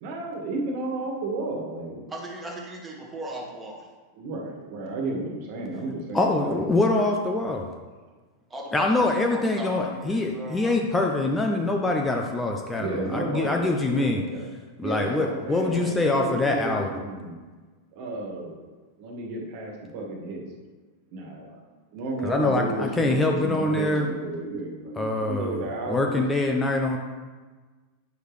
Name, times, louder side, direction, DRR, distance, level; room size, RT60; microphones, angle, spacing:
voice 1, 0.0-2.0 4.2-6.7 12.5-14.5 14.8-17.3 17.9-18.6 19.0-20.4 21.1-21.6 21.9-26.2, right 2 dB, 45° right, -1 dB, 1.9 m, -32 dB
voice 2, 2.1-3.9 8.5-10.8, right 1 dB, 10° right, -2 dB, 1.6 m, -37 dB
voice 3, 6.1-7.7 8.7-14.2 14.8-16.9 22.2-24.1 25.0-25.6 25.9-27.0, left 2 dB, 10° left, 1 dB, 0.7 m, -24 dB
9.3 x 6.5 x 3.2 m, 1.4 s
figure-of-eight pair, 90°, 0 cm